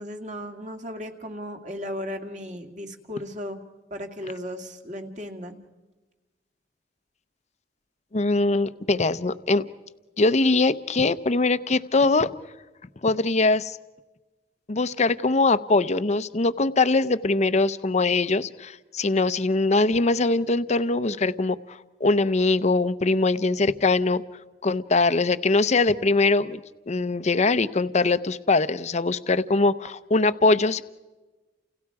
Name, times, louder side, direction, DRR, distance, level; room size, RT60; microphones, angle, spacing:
voice 1, 0.0-3.6 3.9-5.6, equal, 40° right, 4 dB, 2.2 m, -35 dB
voice 2, 8.1-9.6 10.2-12.3 13.0-13.8 14.7-24.2 24.6-30.8, left 3 dB, 40° left, 13 dB, 0.7 m, -22 dB
30.0 x 29.5 x 4.8 m, 1.2 s
head